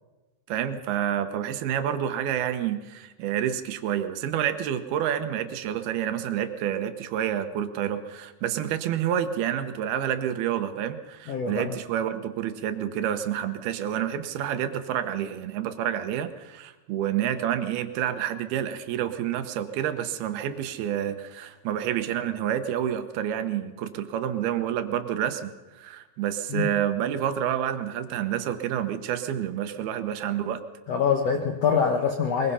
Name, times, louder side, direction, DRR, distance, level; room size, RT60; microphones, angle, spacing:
voice 1, 0.5-30.6, right 10 dB, 75° right, 9 dB, 2.9 m, -28 dB
voice 2, 11.3-11.7 26.5-26.7 30.9-32.5, left 6 dB, 70° left, 4 dB, 1.5 m, -24 dB
22.0 x 21.5 x 5.6 m, 1.1 s
omnidirectional pair, 4.5 m